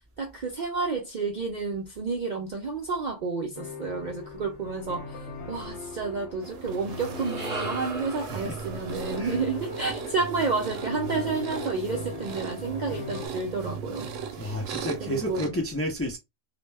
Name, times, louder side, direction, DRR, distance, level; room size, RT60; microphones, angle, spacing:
voice 1, 0.2-5.2 5.5-14.5 15.0-15.6, right 4 dB, 60° right, 0.4 m, -30 dB
sound 1, 3.6-13.3, left 5 dB, 70° left, 0.9 m, -39 dB
sound 2, 6.4-15.5, right 6 dB, 90° right, 1.0 m, -38 dB
sound 3, 6.8-11.2, right 3 dB, 35° right, 0.9 m, -39 dB
voice 2, 14.4-16.2, left 1 dB, 20° left, 0.4 m, -31 dB
2.3 x 2.1 x 3.2 m
omnidirectional pair, 1.3 m